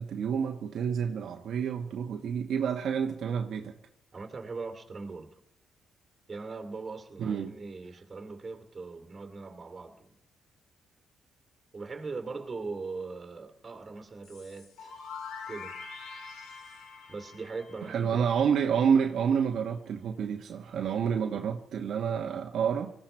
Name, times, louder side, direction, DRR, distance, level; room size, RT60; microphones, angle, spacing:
voice 1, 0.0-3.7 7.2-7.5 17.8-22.9, right 7 dB, 65° right, 1.2 m, -29 dB
voice 2, 4.1-5.3 6.3-10.1 11.7-15.0 15.5-15.8 17.1-18.3, right 4 dB, 30° right, 2.6 m, -40 dB
sound 1, 14.2-19.0, left 5 dB, 85° left, 2.7 m, -45 dB
19.5 x 15.0 x 4.4 m
cardioid pair, 90°, 0 cm